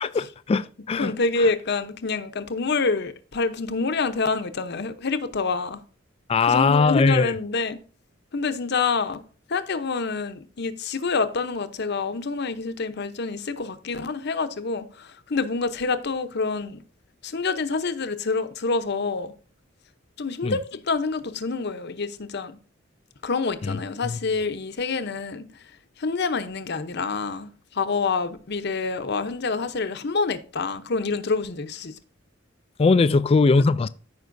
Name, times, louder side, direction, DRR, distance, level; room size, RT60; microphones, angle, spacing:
voice 1, 0.0-1.1 1.4-1.5 6.3-7.3 20.4-20.6 23.6-24.2 32.8-33.9, left 4 dB, 30° left, 0.3 m, -21 dB
voice 2, 1.0-5.8 6.4-7.8 8.3-9.2 9.5-16.8 17.2-19.3 20.2-22.6 23.2-25.5 26.0-31.9, left 4 dB, 60° left, 0.8 m, -27 dB
14.0 x 5.4 x 2.6 m
head